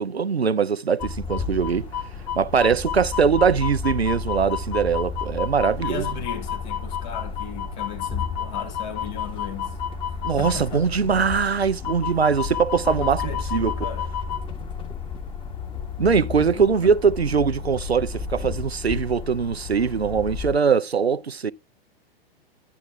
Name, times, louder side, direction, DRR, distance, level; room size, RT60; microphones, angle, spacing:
voice 1, 0.0-1.9 2.4-6.0 10.2-13.2 13.5-13.7 16.0-21.5, right 6 dB, 85° right, 0.6 m, -22 dB
sound 1, 1.0-20.5, left 6 dB, 15° left, 2.1 m, -31 dB
voice 2, 5.8-9.8 10.1-11.2 12.8-14.1 16.1-17.0, left 5 dB, 45° left, 3.1 m, -37 dB
11.0 x 9.5 x 2.5 m
figure-of-eight pair, 100°, 31 cm